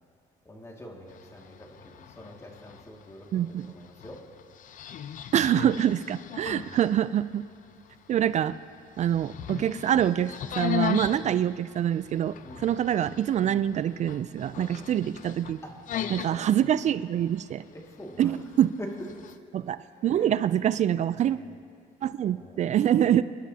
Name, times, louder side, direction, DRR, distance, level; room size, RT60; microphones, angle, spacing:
voice 1, 0.5-4.3 6.5-6.8 11.2-11.4 12.4-12.7 14.5-15.0 15.6-16.5 17.7-18.4 18.8-18.9 19.3-19.4 19.8-20.3 21.2-21.5 22.3-22.6 22.9-23.1, left 1 dB, 15° left, -1 dB, 2.1 m, -45 dB
sound 1, 1.1-19.4, left 9 dB, 50° left, 0.6 m, -39 dB
voice 2, 3.3-3.7 5.3-7.5 8.1-8.6 9.0-15.6 16.1-17.6 18.2-18.7 19.5-21.4 22.0-23.2, right 10 dB, 45° right, 15 dB, 0.4 m, -25 dB
28.5 x 11.5 x 2.8 m, 2.2 s
cardioid pair, 110°, 17 cm